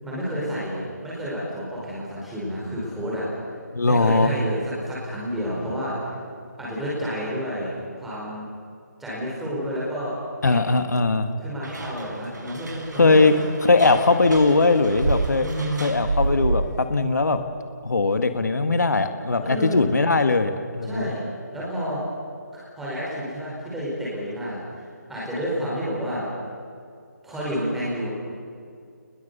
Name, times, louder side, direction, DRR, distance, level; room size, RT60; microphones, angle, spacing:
voice 1, 0.0-3.3 3.8-6.1 6.6-8.5 9.0-10.2 10.4-10.6 11.4-13.3 15.4-15.9 19.4-19.8 20.8-21.2 21.5-22.0 22.5-24.6 25.1-26.3 27.2-28.1, equal, ahead, -8 dB, 5.0 m, -30 dB
voice 2, 3.7-4.3 10.4-11.3 13.0-13.3 13.6-15.5 15.8-17.4 17.8-21.1, left 3 dB, 70° left, 8 dB, 1.9 m, -20 dB
sound 1, 11.6-16.8, right 3 dB, 75° right, 5.9 m, -29 dB
29.5 x 21.0 x 6.9 m, 2.3 s
figure-of-eight pair, 170°, 10 cm